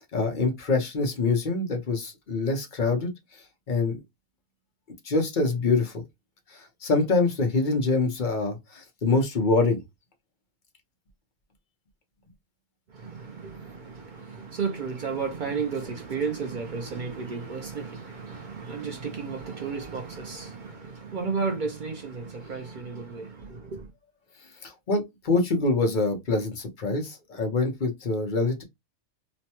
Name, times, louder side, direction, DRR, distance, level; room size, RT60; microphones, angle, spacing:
voice 1, 0.1-3.4 3.7-4.0 5.0-6.0 6.5-9.8 24.6-28.6, left 3 dB, 40° left, 0.8 m, -25 dB
voice 2, 12.9-23.8, right 5 dB, 60° right, 0.5 m, -33 dB
3.1 x 2.1 x 2.9 m
omnidirectional pair, 1.5 m